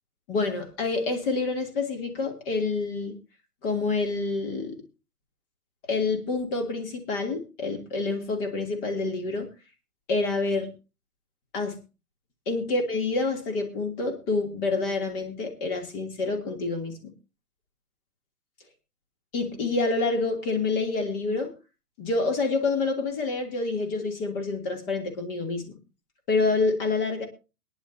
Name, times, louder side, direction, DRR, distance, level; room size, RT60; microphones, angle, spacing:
voice 1, 0.3-3.1 3.6-4.8 5.9-9.5 10.1-10.7 11.5-11.8 12.5-17.1 19.3-21.5 22.0-25.7 26.3-27.3, left 3 dB, 35° left, 4 dB, 3.0 m, -27 dB
21.5 x 10.5 x 2.7 m, 0.30 s
hypercardioid pair, 140°, 46 cm